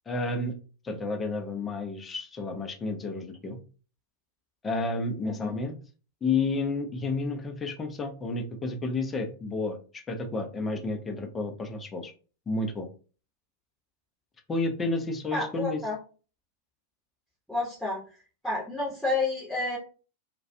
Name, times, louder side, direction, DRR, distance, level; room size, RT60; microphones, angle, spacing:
voice 1, 0.1-0.5 0.8-3.6 4.6-5.8 6.2-9.8 10.1-12.1 12.5-12.9 14.5-15.8, left 3 dB, 20° left, 4 dB, 0.5 m, -31 dB
voice 2, 5.2-5.6 15.3-16.0 17.5-18.0 18.4-19.8, left 2 dB, ahead, -7 dB, 0.8 m, -30 dB
2.3 x 2.1 x 2.6 m, 0.37 s
figure-of-eight pair, 90°, 0 cm